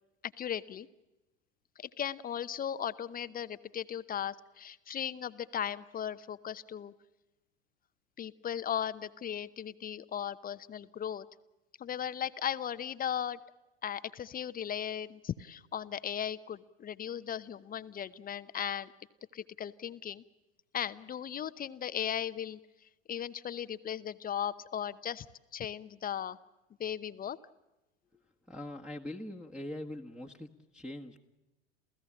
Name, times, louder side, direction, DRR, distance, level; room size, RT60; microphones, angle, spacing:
voice 1, 0.2-0.9 1.8-6.9 8.2-11.3 11.8-13.4 13.8-18.9 19.3-20.2 20.7-22.6 23.1-25.3 25.5-26.4 26.8-27.4, left 9 dB, 25° left, 14 dB, 0.8 m, -37 dB
voice 2, 28.5-31.2, left 1 dB, 5° right, -3 dB, 1.6 m, -42 dB
28.5 x 16.0 x 8.8 m, 1.0 s
figure-of-eight pair, 80°, 33 cm